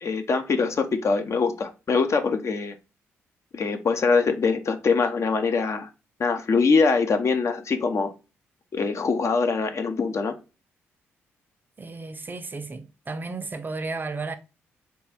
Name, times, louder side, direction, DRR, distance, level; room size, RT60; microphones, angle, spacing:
voice 1, 0.0-2.7 3.5-5.9 6.2-8.1 8.7-10.3, left 4 dB, 45° left, 0.7 m, -23 dB
voice 2, 11.8-14.3, right 3 dB, 30° right, 0.5 m, -33 dB
3.7 x 2.4 x 3.4 m
hypercardioid pair, 45°, 7 cm